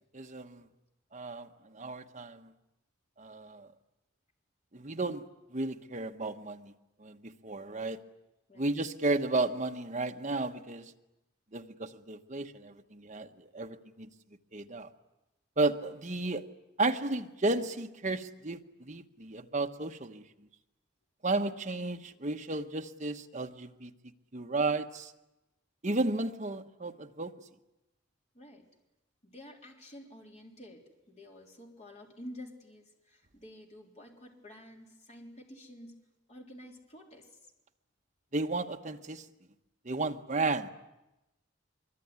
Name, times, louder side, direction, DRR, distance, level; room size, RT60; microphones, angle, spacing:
voice 1, 0.1-0.7 1.1-2.5 3.2-3.7 4.7-6.7 7.0-8.0 8.6-10.8 11.5-14.1 14.5-14.9 15.6-16.5 16.8-20.5 21.2-23.9 24.3-25.1 25.8-27.4 38.3-39.3 39.8-40.7, right 2 dB, 35° right, 1.2 m, -33 dB
voice 2, 28.3-28.7 29.2-36.0 36.3-37.5, left 1 dB, 35° left, 3.7 m, -50 dB
24.0 x 23.5 x 9.6 m
head